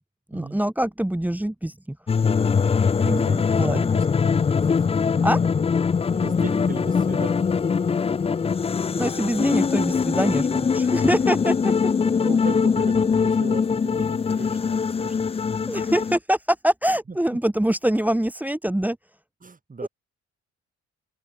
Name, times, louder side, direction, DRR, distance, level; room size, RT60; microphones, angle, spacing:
voice 1, 0.3-2.0 3.0-3.2 3.6-3.8 5.2-5.4 8.9-11.7 12.0-12.3 15.7-19.0 19.8-19.9, right 1 dB, 5° right, 1.6 m, -24 dB
sound 1, 2.1-16.2, left 5 dB, 20° left, 0.4 m, -22 dB
voice 2, 3.0-4.5 6.1-7.4 10.5-10.6 12.2-15.4 17.1-17.2 19.4-19.9, right 4 dB, 25° right, 3.8 m, -37 dB
open air
cardioid pair, 90°, 30 cm